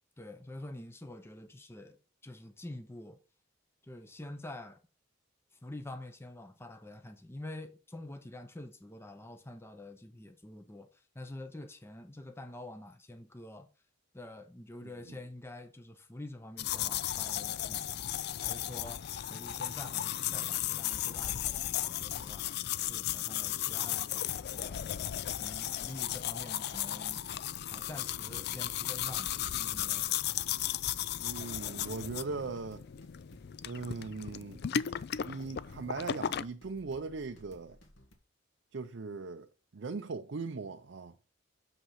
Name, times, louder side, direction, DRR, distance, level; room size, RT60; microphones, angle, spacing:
voice 1, 0.2-3.2 3.8-4.8 5.5-13.7 14.1-27.4 27.7-30.2, left 1 dB, 10° left, 0.7 m, -47 dB
sound 1, 16.6-36.4, left 11 dB, 50° left, 0.3 m, -35 dB
sound 2, 25.5-38.1, equal, 75° left, 2.1 m, -58 dB
voice 2, 31.2-32.8 33.6-34.6 35.2-37.8 38.7-41.2, right 4 dB, 60° right, 0.5 m, -39 dB
6.7 x 5.6 x 5.6 m
head